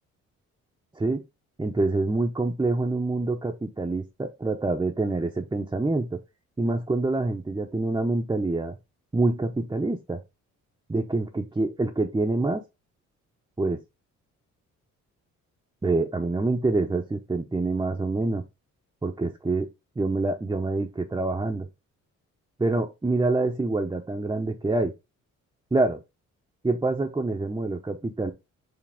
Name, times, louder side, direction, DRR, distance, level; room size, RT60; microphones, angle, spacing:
voice 1, 1.6-6.2 6.6-8.8 9.1-10.2 10.9-12.6 13.6-13.8 15.8-18.4 19.0-19.7 20.0-21.7 22.6-24.9 25.7-26.0 26.6-28.3, right 2 dB, 15° right, 0.8 m, -26 dB
5.0 x 2.9 x 3.5 m
cardioid pair, 90°, 30 cm